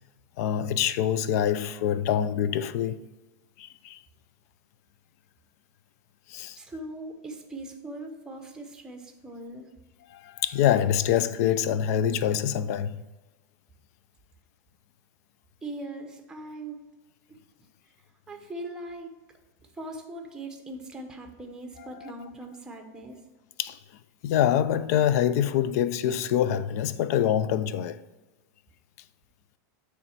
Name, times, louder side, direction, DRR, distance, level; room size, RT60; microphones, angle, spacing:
voice 1, 0.4-3.0 3.6-4.0 6.3-6.6 10.1-13.0 22.0-22.1 23.6-23.8 24.2-28.0, left 10 dB, 60° left, 0.4 m, -25 dB
voice 2, 6.6-9.7 15.6-16.8 17.3-17.4 18.3-19.2 19.7-23.2, right 1 dB, 5° right, 0.8 m, -40 dB
8.6 x 3.2 x 4.5 m
supercardioid pair, 155°, 10 cm